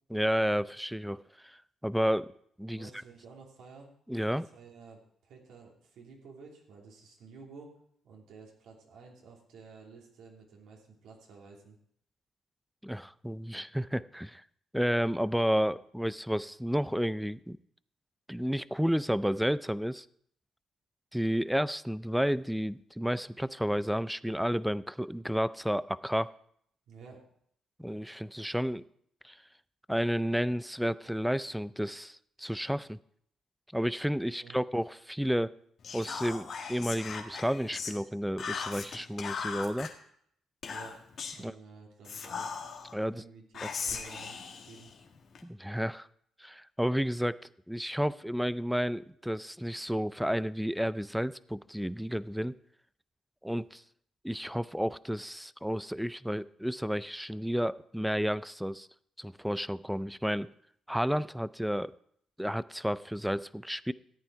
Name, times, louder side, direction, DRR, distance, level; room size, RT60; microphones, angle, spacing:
voice 1, 0.1-1.2 1.4-2.3 2.6-2.9 4.1-4.5 12.8-14.4 14.7-17.6 18.3-20.1 21.1-26.3 27.8-28.8 29.2-29.4 29.9-33.0 33.7-35.5 35.9-39.9 41.4-41.5 42.9-43.2 43.6-43.7 45.4-46.1 46.4-47.4 47.7-52.5 53.4-53.8 54.2-58.9 59.2-60.5 60.9-61.9 62.4-63.9, equal, ahead, 17 dB, 0.4 m, -31 dB
voice 2, 2.7-3.9 4.3-7.7 8.0-11.8 26.9-27.2 34.3-34.6 40.6-41.0 41.4-42.6 43.1-44.9, right 5 dB, 80° right, -1 dB, 3.0 m, -52 dB
Whispering, 35.8-38.0 38.4-39.9 40.6-41.4 42.0-42.9 43.5-45.4, left 5 dB, 55° left, 1.7 m, -38 dB
14.0 x 9.0 x 4.7 m, 0.67 s
cardioid pair, 90°, 0 cm